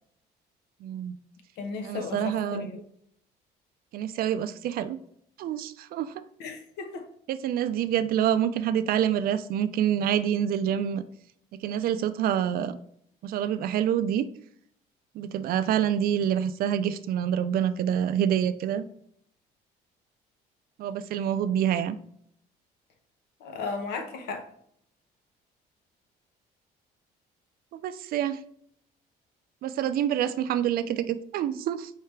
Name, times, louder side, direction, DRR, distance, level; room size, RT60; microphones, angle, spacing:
voice 1, 0.8-1.2 1.8-2.7 3.9-5.0 5.4-6.2 7.3-11.0 11.5-12.8 13.2-14.3 15.1-18.8 20.8-22.0 27.8-28.4 29.6-31.9, right 9 dB, 60° right, 0.4 m, -27 dB
voice 2, 1.6-2.8 6.4-7.1 23.4-24.5, left 4 dB, 85° left, 0.9 m, -35 dB
4.7 x 3.3 x 3.3 m
cardioid pair, 110°, 17 cm